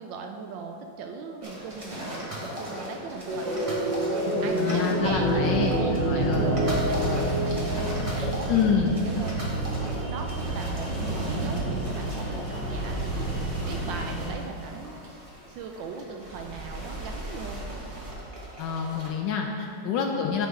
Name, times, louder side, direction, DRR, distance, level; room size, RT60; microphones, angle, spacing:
voice 1, 0.0-3.8 4.4-8.5 8.8-15.2 15.5-17.6 20.0-20.3, right 5 dB, 75° right, 3 dB, 1.1 m, -39 dB
sound 1, 1.4-19.1, equal, 20° right, 0.9 m, -37 dB
sound 2, 3.3-8.4, right 1 dB, 60° right, 2.2 m, -28 dB
voice 2, 4.6-6.5 8.5-9.0 18.6-20.5, left 6 dB, 75° left, 2 dB, 1.1 m, -27 dB
sound 3, 5.0-14.3, right 2 dB, 30° left, 1.9 m, -30 dB
9.2 x 3.9 x 4.8 m, 2.7 s
omnidirectional pair, 2.3 m